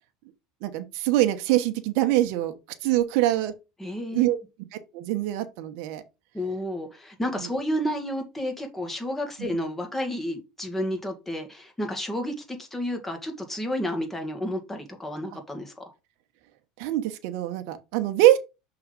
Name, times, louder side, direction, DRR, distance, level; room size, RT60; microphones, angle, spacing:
voice 1, 0.6-2.5 2.8-3.5 4.1-4.4 4.7-6.0 7.4-7.5 9.4-9.6 16.8-18.4, right 14 dB, 70° right, 1.0 m, -24 dB
voice 2, 3.8-4.2 6.3-15.7, equal, 10° left, 1.9 m, -31 dB
6.0 x 3.9 x 5.3 m
supercardioid pair, 115°, 3 cm